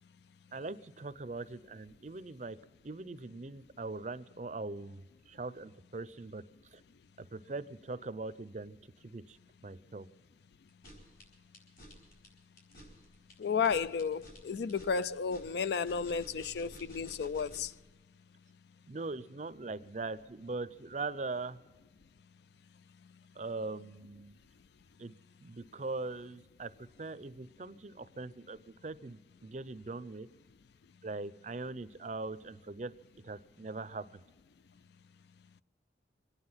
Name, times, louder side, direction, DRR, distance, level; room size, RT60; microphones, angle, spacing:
voice 1, 0.5-2.6 2.8-6.4 6.7-6.8 7.2-8.8 9.0-9.4 9.6-10.1 18.9-21.6 23.4-24.4 25.0-25.1 25.4-30.3 31.0-32.9 33.2-34.2, right 3 dB, 40° right, 0.5 m, -41 dB
sound 1, 10.7-17.8, equal, 50° left, 4.4 m, -53 dB
voice 2, 13.4-17.7, left 6 dB, 65° left, 0.4 m, -33 dB
24.0 x 9.7 x 5.7 m
head